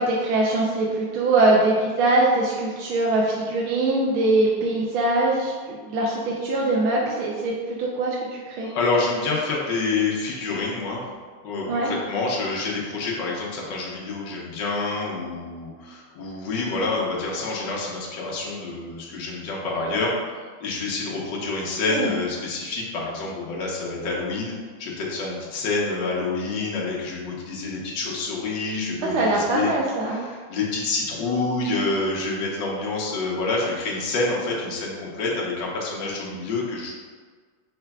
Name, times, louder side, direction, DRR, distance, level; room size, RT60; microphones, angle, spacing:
voice 1, 0.0-8.7 11.7-11.9 21.9-22.2 29.1-30.2, right 2 dB, 80° right, -3 dB, 1.4 m, -22 dB
voice 2, 8.6-11.0 11.4-20.1 20.6-24.5 24.8-29.7 30.1-36.9, left 3 dB, 65° left, -3 dB, 1.4 m, -27 dB
4.9 x 4.4 x 2.3 m, 1.5 s
omnidirectional pair, 2.3 m